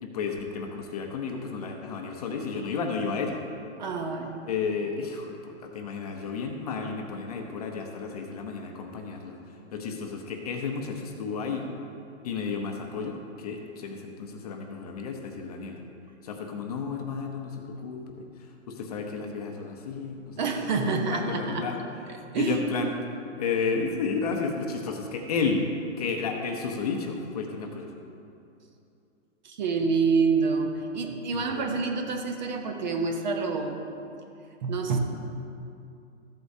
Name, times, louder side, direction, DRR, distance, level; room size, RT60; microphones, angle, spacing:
voice 1, 0.0-3.4 4.5-11.7 12.2-15.8 16.2-20.8 21.1-21.8 22.1-22.9 23.4-25.6 26.0-27.9 31.3-31.6, left 5 dB, 30° left, 3 dB, 0.7 m, -32 dB
voice 2, 3.8-4.4 20.4-21.7 22.3-22.7 29.4-33.8 34.6-35.0, right 4 dB, 35° right, 4 dB, 0.8 m, -27 dB
14.0 x 8.1 x 2.7 m, 2.6 s
hypercardioid pair, 160°, 38 cm